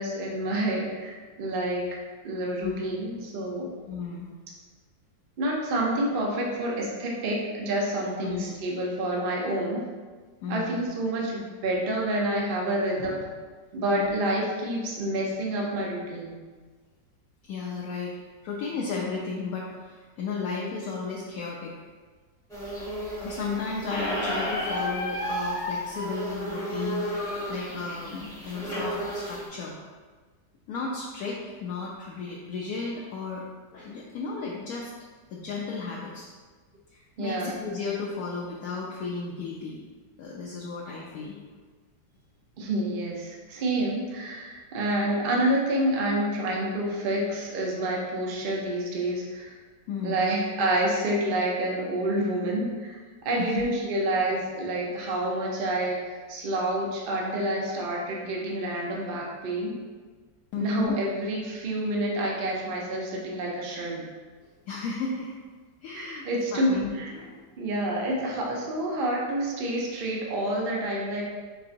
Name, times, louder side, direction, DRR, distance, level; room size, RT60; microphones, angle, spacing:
voice 1, 0.0-1.8 2.2-3.7 5.4-9.8 10.5-13.3 13.7-16.4 37.2-37.5 42.6-49.5 50.0-59.7 60.5-64.0 65.9-67.1 67.6-71.2, right 1 dB, 70° right, -2 dB, 0.5 m, -28 dB
voice 2, 3.9-4.3 8.2-8.5 8.8-8.9 10.4-10.8 14.0-14.1 17.5-18.1 18.4-21.7 22.7-22.8 23.2-27.1 27.5-29.7 30.7-33.4 33.7-34.9 35.3-36.3 36.9-39.8 40.2-41.3 49.9-50.3 53.4-53.6 60.5-60.9 64.7-65.3 65.8-66.2 66.5-67.4, left 4 dB, 75° left, -3 dB, 0.8 m, -34 dB
sound 1, 22.5-29.5, right 1 dB, 5° left, 0.8 m, -36 dB
Squeak, 23.9-28.9, left 1 dB, 45° left, 1.0 m, -33 dB
4.6 x 3.9 x 2.5 m, 1.4 s
omnidirectional pair, 2.0 m